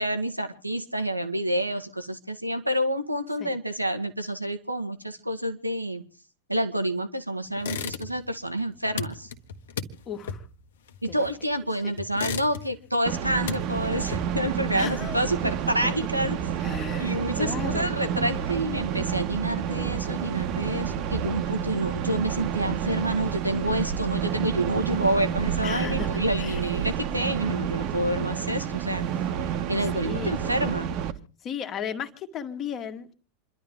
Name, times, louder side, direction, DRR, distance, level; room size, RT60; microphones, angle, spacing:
voice 1, 0.0-6.0 6.5-9.3 11.0-16.4 17.0-29.1 29.7-30.9, right 1 dB, 90° right, 8 dB, 1.5 m, -28 dB
sound 1, 7.6-8.4 8.6-11.5 12.0-12.9 13.2-14.5, left 7 dB, 60° left, 1.5 m, -35 dB
voice 2, 10.1-10.4 11.0-11.2 11.8-11.9 14.7-15.2 16.6-17.9 25.6-26.6 29.9-30.4 31.4-33.1, left 7 dB, 30° left, 7 dB, 1.9 m, -35 dB
sound 2, 13.1-31.1, right 8 dB, 40° right, 1.3 m, -29 dB
28.0 x 12.0 x 3.6 m, 0.38 s
figure-of-eight pair, 90°, 0 cm